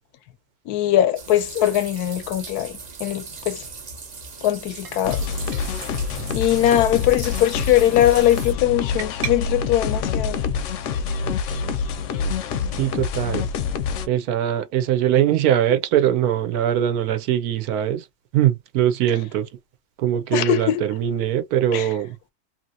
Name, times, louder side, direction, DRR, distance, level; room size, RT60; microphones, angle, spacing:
voice 1, 0.7-3.6 4.4-5.3 6.3-10.4 20.3-20.8 21.7-21.9, left 12 dB, 85° left, 1.1 m, -21 dB
sound 1, 1.2-8.5, right 5 dB, 45° right, 0.5 m, -38 dB
sound 2, 4.8-5.3 5.5-5.6 5.9-6.8 7.2-7.5 9.0-9.3, right 8 dB, 65° right, 1.1 m, -36 dB
sound 3, 5.0-14.1, left 6 dB, 65° left, 0.8 m, -26 dB
voice 2, 12.8-13.5 14.1-18.1 18.3-19.5 20.0-22.2, right 11 dB, 85° right, 1.1 m, -21 dB
2.8 x 2.8 x 2.6 m
omnidirectional pair, 1.6 m